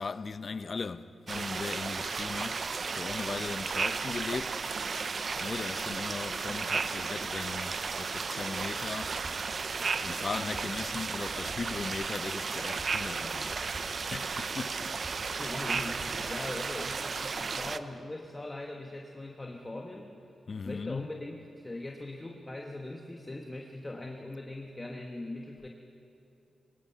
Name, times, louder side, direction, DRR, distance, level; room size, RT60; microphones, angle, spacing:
voice 1, 0.0-2.6 2.9-4.6 5.0-5.1 5.4-9.2 9.9-13.6 14.1-14.9 20.5-21.1, left 4 dB, 45° left, 0.6 m, -38 dB
sound 1, 1.3-17.8, right 5 dB, 45° right, 0.6 m, -34 dB
sound 2, 9.0-9.7 10.5-12.3 12.8-14.2 15.0-16.8, right 2 dB, 15° right, 5.6 m, -50 dB
voice 2, 15.4-20.1 20.6-25.7, left 2 dB, 20° left, 1.2 m, -41 dB
23.0 x 20.0 x 5.7 m
wide cardioid pair, 115°, 0 cm